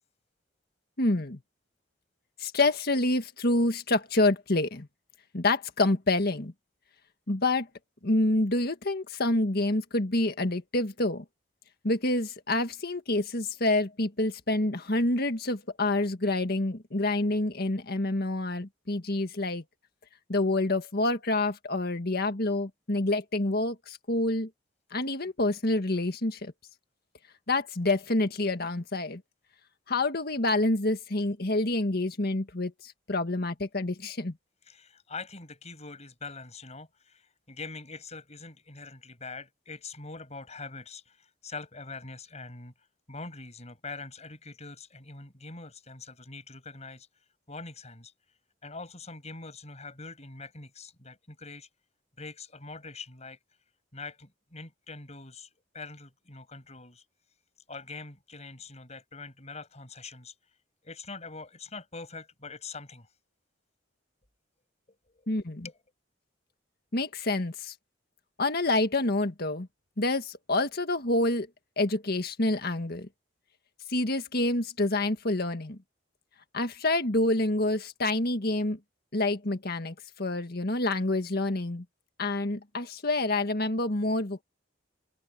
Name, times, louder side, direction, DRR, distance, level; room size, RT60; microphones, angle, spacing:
voice 1, 1.0-1.4 2.4-4.9 5.3-6.5 7.3-7.7 8.0-11.2 11.8-19.6 20.3-24.5 24.9-26.5 27.5-29.2 29.9-34.3 65.3-65.7 66.9-67.7 68.4-69.7 70.0-71.5 71.8-73.1 73.9-75.8 76.5-78.8 79.1-81.8 82.2-84.4, left 2 dB, 55° left, 1.8 m, -27 dB
voice 2, 34.6-42.7 43.1-47.1 47.5-48.1 48.6-51.7 52.2-53.4 53.9-57.0 57.7-60.6 60.8-63.1 64.9-65.3 65.6-65.8, left 3 dB, 35° left, 6.5 m, -44 dB
head